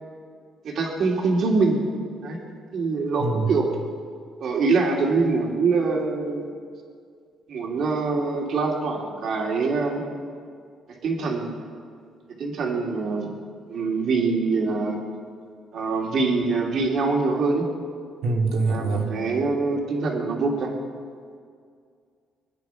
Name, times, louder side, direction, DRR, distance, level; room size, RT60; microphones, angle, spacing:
voice 1, 0.6-1.8 2.2-2.4 2.7-3.7 4.4-6.5 7.5-10.0 10.9-11.5 12.4-13.3 13.7-15.0 15.7-17.7 18.6-20.7, right 4 dB, 55° right, 0 dB, 2.9 m, -24 dB
voice 2, 3.2-3.5 18.2-19.1, right 3 dB, 80° right, 1 dB, 2.7 m, -24 dB
24.0 x 9.9 x 5.8 m, 2.2 s
cardioid pair, 125°, 0 cm